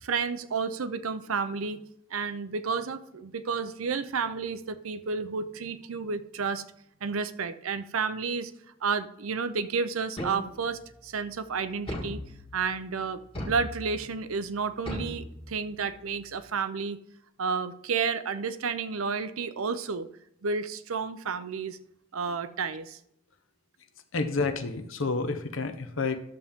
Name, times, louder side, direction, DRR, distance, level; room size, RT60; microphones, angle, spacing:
voice 1, 0.0-1.8 2.1-6.6 7.0-8.5 8.8-12.2 12.5-17.0 17.4-20.1 20.4-21.8 22.1-23.0, right 5 dB, 85° right, 12 dB, 0.6 m, -31 dB
sound 1, 10.2-10.9 11.9-12.7 13.3-14.1 14.9-15.9, equal, 25° left, 1.6 m, -38 dB
voice 2, 24.1-26.2, left 3 dB, 70° left, 8 dB, 0.9 m, -29 dB
11.5 x 7.2 x 3.6 m, 0.78 s
head